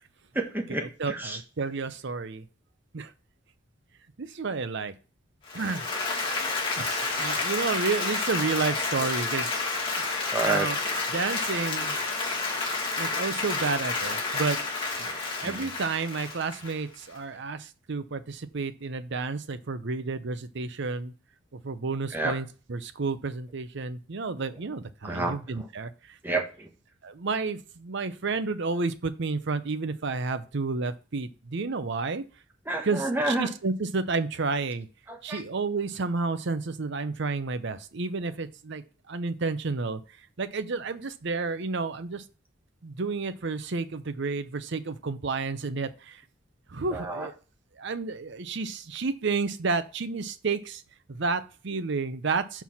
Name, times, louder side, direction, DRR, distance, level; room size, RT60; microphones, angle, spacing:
voice 1, 0.3-1.4 7.0-7.4 10.3-10.7 15.4-15.6 22.1-22.4 25.0-25.7 26.2-26.7 32.7-33.5 35.1-35.4 46.9-47.3, right 2 dB, 10° right, 2 dB, 1.2 m, -30 dB
voice 2, 1.0-2.4 2.9-3.1 4.2-4.9 5.5-5.8 6.8-9.5 10.4-10.8 11.1-11.9 13.0-14.6 15.0-21.1 21.5-25.9 27.0-32.2 32.8-34.9 35.2-40.0 40.4-42.2 42.8-46.2 46.7-47.3 47.8-50.8 51.1-52.6, right 4 dB, 60° right, 11 dB, 0.7 m, -31 dB
Applause, 5.4-17.2, left 3 dB, 25° left, 1.9 m, -30 dB
5.6 x 4.7 x 5.8 m, 0.35 s
head